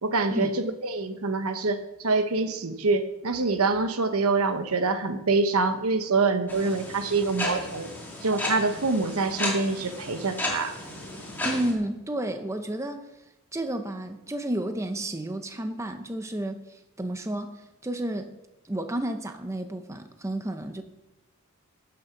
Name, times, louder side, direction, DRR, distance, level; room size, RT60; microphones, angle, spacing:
voice 1, 0.0-7.9 8.2-10.8, right 3 dB, 75° right, 9 dB, 1.0 m, -25 dB
sound 1, 6.5-11.7, left 1 dB, 10° left, 2.2 m, -34 dB
voice 2, 11.4-13.1 13.5-18.3 18.6-20.8, right 1 dB, 15° right, 7 dB, 0.6 m, -31 dB
16.0 x 6.5 x 5.8 m, 0.96 s
head